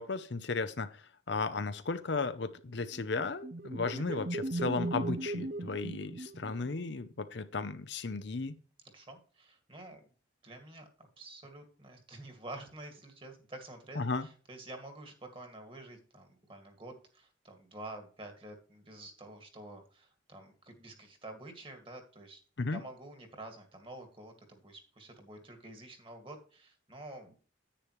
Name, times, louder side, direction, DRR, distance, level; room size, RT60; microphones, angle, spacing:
voice 1, 0.0-8.5 14.0-14.3 22.6-22.8, left 4 dB, 60° left, 11 dB, 0.7 m, -35 dB
sound 1, 2.9-6.9, right 2 dB, 45° right, 0.6 m, -37 dB
voice 2, 8.9-10.0 10.4-22.4 22.7-27.3, right 2 dB, 25° right, 5 dB, 2.1 m, -49 dB
10.0 x 8.7 x 3.1 m, 0.38 s
head